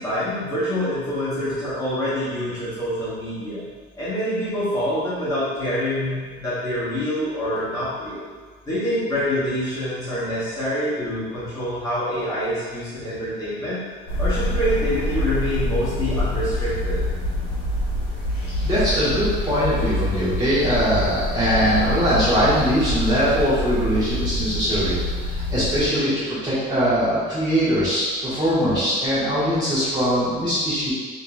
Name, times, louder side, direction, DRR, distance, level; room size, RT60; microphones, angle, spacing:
voice 1, 0.0-3.6 4.0-8.3 8.7-13.9 14.2-17.0, equal, 20° left, -12 dB, 1.1 m, -26 dB
sound 1, 14.1-25.9, left 1 dB, 85° left, 0.9 m, -26 dB
voice 2, 18.6-30.9, equal, 20° right, -12 dB, 1.3 m, -21 dB
3.7 x 2.8 x 2.3 m, 1.5 s
cardioid pair, 145°, 20 cm